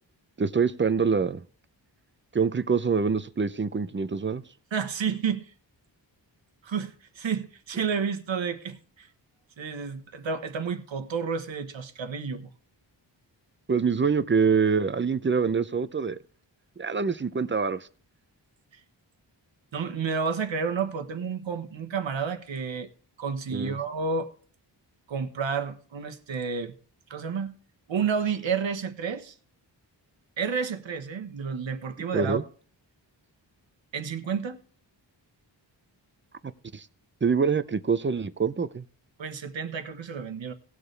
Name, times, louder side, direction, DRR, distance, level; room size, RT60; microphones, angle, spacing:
voice 1, 0.4-1.4 2.3-4.4 13.7-16.2 16.8-17.8 23.5-23.8 32.1-32.4 36.7-36.8 37.2-38.8, right 5 dB, 25° right, 0.5 m, -25 dB
voice 2, 4.7-5.5 6.6-9.1 9.6-12.5 19.7-22.9 23.2-24.3 25.1-26.7 27.1-27.5 27.9-29.3 30.4-32.4 33.9-34.6 39.2-40.5, right 6 dB, 85° right, 1.2 m, -30 dB
18.5 x 6.8 x 3.3 m
wide cardioid pair, 120°, 45 cm